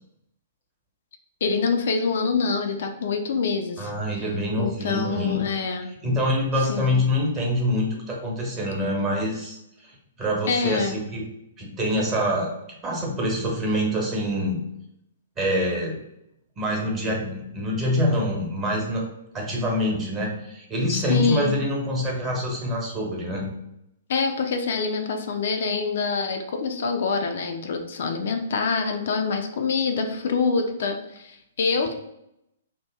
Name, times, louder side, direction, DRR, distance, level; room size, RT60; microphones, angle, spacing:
voice 1, 1.4-3.9 4.6-5.9 6.7-7.0 10.5-11.0 20.9-21.6 24.1-31.9, left 4 dB, 60° left, 4 dB, 0.4 m, -25 dB
voice 2, 3.8-5.6 6.0-11.2 11.6-12.5 12.8-14.6 15.4-16.0 16.6-19.1 19.3-23.5, left 1 dB, 25° right, -2 dB, 1.1 m, -25 dB
2.8 x 2.2 x 3.5 m, 0.81 s
figure-of-eight pair, 115°, 0 cm